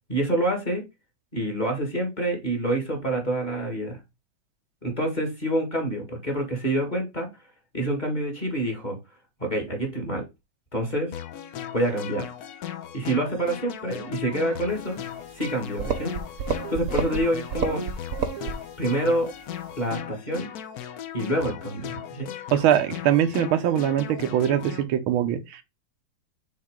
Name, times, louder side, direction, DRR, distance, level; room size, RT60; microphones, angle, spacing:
voice 1, 0.1-0.8 1.3-4.0 4.8-7.3 7.7-9.0 9.4-10.3 10.7-11.1 11.7-12.3 12.9-15.0 15.3-16.1 16.7-17.8 18.8-19.3 19.8-20.5 21.1-22.3, right 1 dB, 25° left, 1.7 m, -27 dB
sound 1, 11.1-24.8, left 10 dB, 65° left, 1.0 m, -38 dB
sound 2, 15.5-15.6 15.8-17.2 17.5-18.6, right 6 dB, 60° right, 1.0 m, -29 dB
voice 2, 22.5-25.6, right 10 dB, 85° right, 1.6 m, -22 dB
6.4 x 4.1 x 3.7 m
omnidirectional pair, 2.2 m